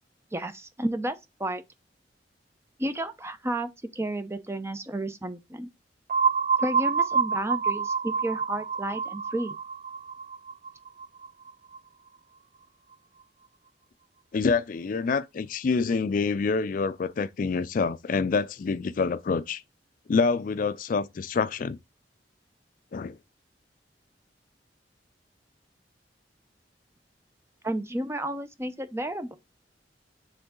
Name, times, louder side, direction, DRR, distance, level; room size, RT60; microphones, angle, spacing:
voice 1, 0.3-1.6 2.8-5.7 6.6-9.6 27.6-29.3, right 1 dB, 15° right, 0.8 m, -32 dB
sound 1, 6.1-11.8, right 6 dB, 40° right, 0.3 m, -27 dB
voice 2, 14.3-19.6 20.1-21.8 22.9-23.2, left 4 dB, 50° left, 0.4 m, -26 dB
9.5 x 3.8 x 3.7 m
head